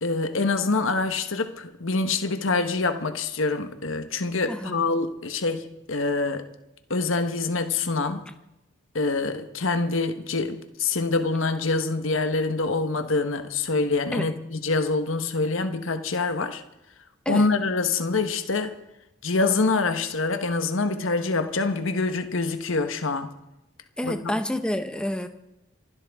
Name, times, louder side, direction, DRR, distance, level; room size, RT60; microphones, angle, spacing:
voice 1, 0.0-6.5 6.9-8.2 8.9-16.6 17.3-18.7 19.2-23.3 24.0-24.3, left 3 dB, 65° left, 1.2 m, -25 dB
voice 2, 24.0-25.3, left 1 dB, 5° left, 0.9 m, -28 dB
27.0 x 12.0 x 3.6 m
head